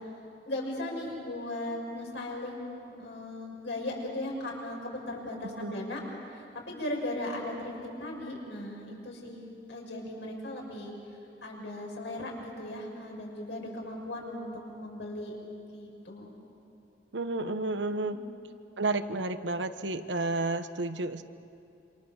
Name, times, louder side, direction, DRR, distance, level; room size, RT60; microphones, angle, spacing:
voice 1, 0.4-6.0 6.3-9.4 9.7-10.9 11.4-15.3 15.7-16.3 18.0-18.2, left 1 dB, 80° left, -1 dB, 6.3 m, -37 dB
voice 2, 5.4-5.8 17.1-18.2 18.8-21.2, right 2 dB, 85° right, 10 dB, 1.1 m, -31 dB
28.0 x 26.0 x 7.3 m, 2.6 s
head